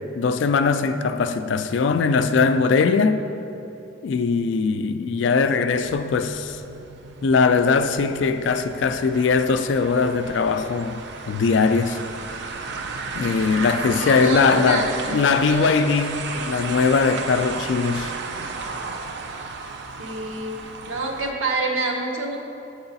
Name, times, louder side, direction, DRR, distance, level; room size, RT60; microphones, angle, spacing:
voice 1, 0.2-3.2 4.0-6.6 7.2-12.0 13.1-18.1, left 4 dB, 60° left, 0.3 m, -21 dB
sound 1, 5.7-21.3, right 4 dB, 55° right, 0.4 m, -34 dB
voice 2, 13.9-15.7 20.0-22.4, right 2 dB, 75° right, 0.9 m, -27 dB
7.8 x 4.7 x 4.0 m
head